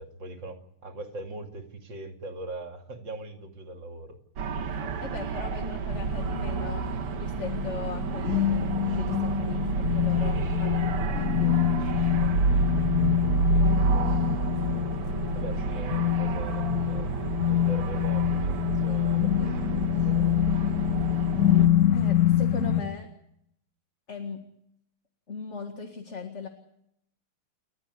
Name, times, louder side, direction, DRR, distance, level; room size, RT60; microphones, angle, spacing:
voice 1, 0.0-4.2 13.5-14.2 15.3-20.4, right 2 dB, 55° right, 4 dB, 3.2 m, -41 dB
sound 1, 4.4-21.7, right 4 dB, 80° right, 2.5 m, -30 dB
voice 2, 4.7-6.9 7.2-8.5 9.0-12.4 21.9-23.1 24.1-24.4 25.3-26.5, left 4 dB, 35° left, 5 dB, 2.0 m, -39 dB
sound 2, 5.9-22.8, left 10 dB, 55° left, 1.8 m, -26 dB
30.0 x 13.5 x 9.8 m, 0.75 s
omnidirectional pair, 2.4 m